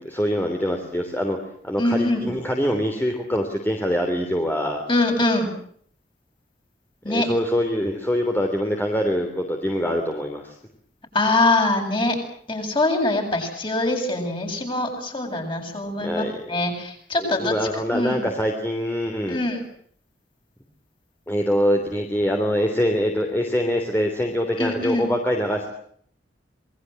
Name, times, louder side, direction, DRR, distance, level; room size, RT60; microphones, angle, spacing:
voice 1, 0.0-1.4 1.6-4.8 7.1-10.6 16.0-16.6 17.2-19.4 21.3-25.7, equal, 10° left, 3 dB, 3.4 m, -24 dB
voice 2, 1.8-2.3 4.9-5.5 7.0-7.3 11.1-12.2 12.5-17.6 17.9-18.3 19.3-19.6 24.6-25.1, left 2 dB, 30° left, 3 dB, 8.0 m, -23 dB
27.5 x 22.0 x 7.8 m, 0.62 s
head